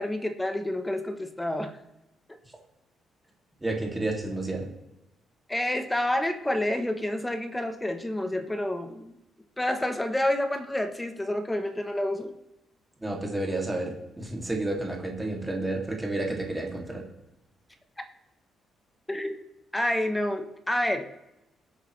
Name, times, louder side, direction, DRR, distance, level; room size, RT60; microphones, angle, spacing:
voice 1, 0.0-1.8 5.5-9.1 9.6-12.3 19.1-19.4 19.7-21.1, left 1 dB, 10° left, 7 dB, 0.8 m, -28 dB
voice 2, 3.6-4.7 13.0-17.0, right 2 dB, 10° right, -1 dB, 2.3 m, -31 dB
21.0 x 8.3 x 3.2 m, 0.91 s
cardioid pair, 165°, 0 cm